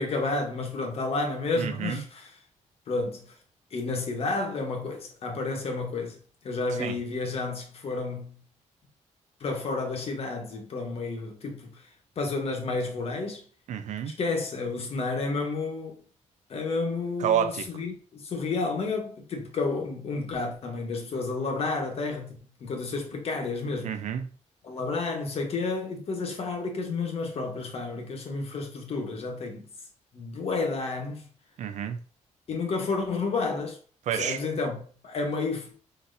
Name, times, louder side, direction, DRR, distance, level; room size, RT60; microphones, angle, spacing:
voice 1, 0.0-2.3 2.9-3.2 3.7-6.2 6.4-8.4 9.4-11.8 12.2-13.4 14.1-16.0 16.5-24.0 24.6-29.7 30.1-31.3 32.5-33.8 34.1-35.8, left 3 dB, 50° left, 1.2 m, -31 dB
voice 2, 1.6-2.0 6.8-7.0 13.7-14.1 17.2-17.7 23.8-24.3 31.6-32.0 34.1-34.4, right 9 dB, 70° right, 0.6 m, -29 dB
4.1 x 4.1 x 2.6 m
cardioid pair, 140°, 13 cm